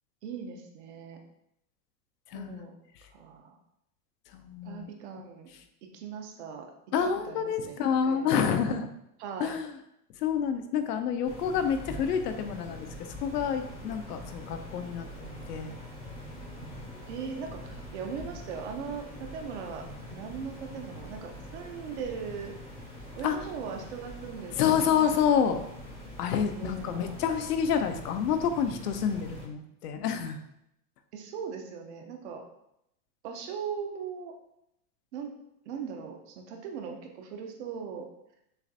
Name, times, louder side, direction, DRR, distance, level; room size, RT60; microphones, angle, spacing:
voice 1, 0.2-1.2 2.3-2.8 3.1-3.6 4.6-5.5 5.9-6.7 7.2-8.5 9.2-9.6 17.1-22.5 23.1-25.5 26.5-27.1 31.1-32.4 33.2-34.3 35.1-35.3 35.7-38.1, right 6 dB, 45° right, 3 dB, 0.7 m, -39 dB
voice 2, 2.3-2.6 4.3-4.9 6.9-8.9 9.4-9.7 10.2-12.9 13.2-15.8 23.2-23.4 24.6-25.6 26.2-30.4, left 7 dB, 90° left, 8 dB, 0.7 m, -28 dB
sound 1, 11.3-29.4, left 1 dB, 10° left, 0.4 m, -44 dB
6.5 x 2.5 x 2.7 m, 0.79 s
supercardioid pair, 160°, 46 cm